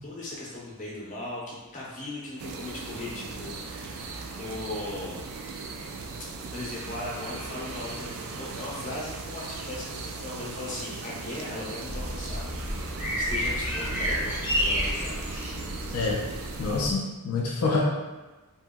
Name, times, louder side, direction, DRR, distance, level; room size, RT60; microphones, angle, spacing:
voice 1, 0.0-5.3 6.5-12.5 13.1-15.2, left 2 dB, 35° left, -5 dB, 0.6 m, -38 dB
sound 1, 2.4-16.8, right 4 dB, 70° right, 0.3 m, -38 dB
sound 2, 11.9-16.9, equal, 5° right, 0.6 m, -30 dB
voice 2, 16.6-17.8, left 3 dB, 80° left, -3 dB, 0.5 m, -26 dB
2.8 x 2.7 x 2.2 m, 1.2 s
head